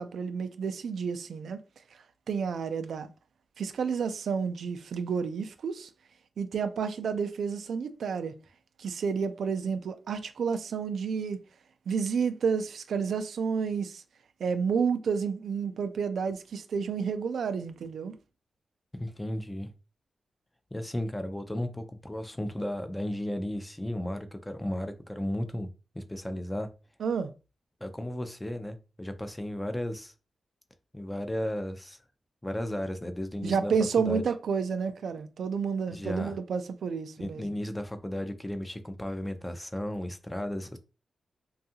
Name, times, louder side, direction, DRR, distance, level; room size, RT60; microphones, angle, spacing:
voice 1, 0.0-1.6 1.9-3.1 3.6-5.9 6.4-8.3 8.8-11.4 11.9-14.0 14.4-18.2 27.0-27.3 33.4-37.4, right 6 dB, 80° right, 0.3 m, -30 dB
voice 2, 19.0-19.7 20.7-25.7 25.9-26.7 27.8-30.1 30.9-32.0 32.4-34.2 35.9-36.4 37.2-40.8, left 1 dB, 15° left, 0.4 m, -34 dB
2.6 x 2.3 x 2.7 m
cardioid pair, 75°, 0 cm